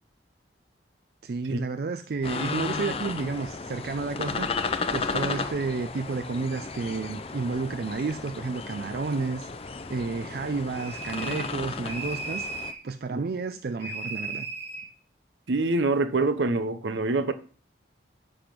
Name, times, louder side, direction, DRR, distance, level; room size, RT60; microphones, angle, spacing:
voice 1, 1.2-4.5 4.9-9.5 9.9-12.5 12.8-14.5, right 4 dB, 55° right, 0.4 m, -31 dB
sound 1, 2.2-12.7, left 4 dB, 30° left, 0.4 m, -34 dB
sound 2, 10.7-11.5 11.8-12.8 13.8-14.9, right 3 dB, 30° right, 3.5 m, -36 dB
voice 2, 15.5-17.3, right 3 dB, 75° right, 0.7 m, -25 dB
9.9 x 3.5 x 6.0 m
head